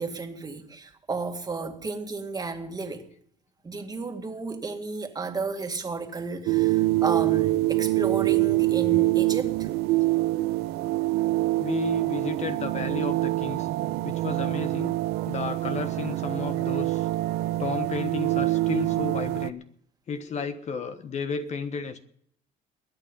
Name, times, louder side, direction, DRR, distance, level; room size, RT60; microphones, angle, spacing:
voice 1, 0.0-3.0 3.6-9.7, right 4 dB, 25° right, 2.1 m, -33 dB
sound 1, 6.5-19.5, right 18 dB, 80° right, 0.8 m, -25 dB
voice 2, 11.6-13.7 14.0-14.9 15.3-17.1 17.6-19.6 20.1-22.0, left 6 dB, 45° left, 1.3 m, -33 dB
22.5 x 9.1 x 5.4 m
cardioid pair, 105°, 17 cm